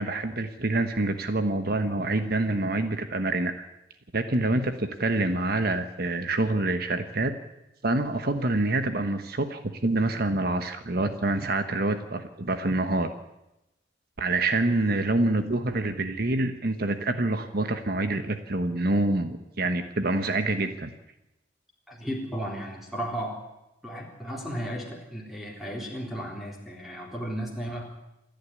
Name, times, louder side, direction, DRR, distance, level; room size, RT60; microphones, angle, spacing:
voice 1, 0.0-3.7 4.1-7.3 7.8-13.1 14.2-20.9, right 2 dB, 50° right, 8 dB, 1.2 m, -26 dB
voice 2, 21.9-23.4 23.8-28.0, equal, ahead, -1 dB, 3.8 m, -34 dB
27.5 x 10.5 x 9.7 m, 0.93 s
head